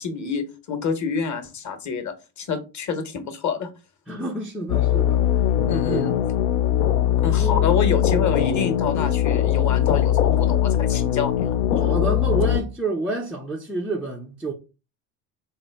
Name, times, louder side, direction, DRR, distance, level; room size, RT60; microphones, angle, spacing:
voice 1, 0.0-3.7 5.7-6.1 7.2-11.6, left 5 dB, 35° left, 0.9 m, -27 dB
voice 2, 4.1-5.3 5.8-6.2 7.3-7.8 11.8-14.5, right 2 dB, 5° right, 0.3 m, -29 dB
sound 1, 4.7-12.6, left 11 dB, 70° left, 0.6 m, -21 dB
4.1 x 2.2 x 3.3 m
hypercardioid pair, 65°, 50 cm